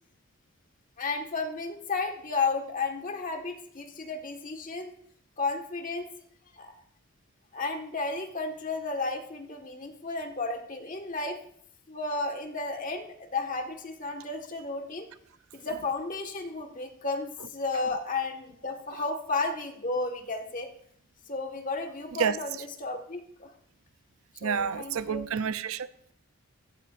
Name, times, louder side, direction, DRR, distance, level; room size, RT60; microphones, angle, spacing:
voice 1, 1.0-4.9 5.4-6.1 6.5-6.7 7.5-11.4 11.9-15.1 15.5-20.7 21.3-23.5 24.4-25.3, left 3 dB, 35° left, 1.6 m, -33 dB
voice 2, 24.4-26.1, right 6 dB, 70° right, 0.5 m, -29 dB
15.5 x 13.5 x 2.5 m
head